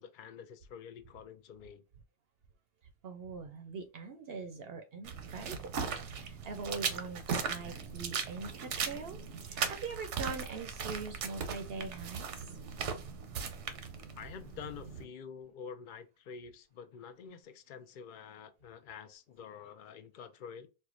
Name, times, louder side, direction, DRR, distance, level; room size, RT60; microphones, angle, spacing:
voice 1, 0.0-1.8 14.1-20.7, left 7 dB, 55° left, 0.6 m, -48 dB
voice 2, 3.0-12.3, right 4 dB, 65° right, 0.7 m, -43 dB
sound 1, 5.0-15.0, right 6 dB, 85° right, 1.0 m, -38 dB
4.5 x 2.1 x 2.4 m
omnidirectional pair, 1.2 m